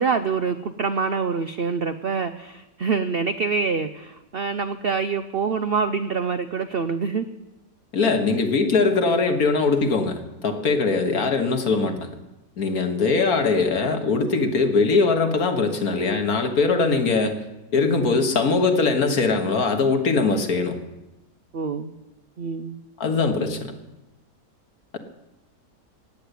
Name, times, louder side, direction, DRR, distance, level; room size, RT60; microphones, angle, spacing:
voice 1, 0.0-7.3 21.5-21.9 22.4-22.8, right 5 dB, 70° right, 10 dB, 0.5 m, -25 dB
voice 2, 7.9-12.0 12.6-17.5 17.7-20.8 23.0-23.8, left 4 dB, 60° left, 6 dB, 1.9 m, -21 dB
16.0 x 9.4 x 8.3 m, 1.0 s
omnidirectional pair, 1.8 m